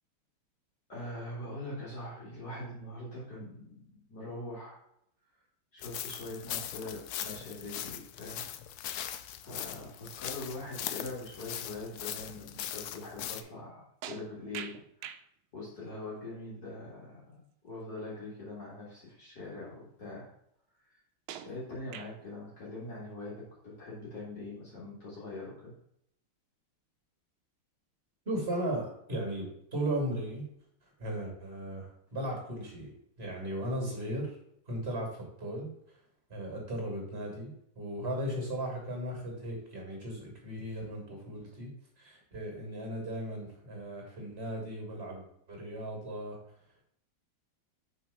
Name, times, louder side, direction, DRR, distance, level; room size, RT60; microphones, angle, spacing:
voice 1, 0.9-4.8 5.7-8.5 8.9-15.1 15.5-20.3 21.4-25.7 44.1-44.2, left 2 dB, 50° left, -6 dB, 2.4 m, -43 dB
sound 1, 5.8-13.4, left 11 dB, 80° left, 0.8 m, -40 dB
sound 2, 14.0-15.3 18.2-18.3 19.0-19.1 21.3-22.3, right 10 dB, 85° right, 1.4 m, -44 dB
voice 2, 28.3-30.4 31.0-32.9 33.2-34.4 34.7-35.7 36.3-41.7 42.0-46.4, right 1 dB, 30° right, 0 dB, 2.7 m, -36 dB
5.9 x 4.6 x 5.2 m, 0.73 s
omnidirectional pair, 2.2 m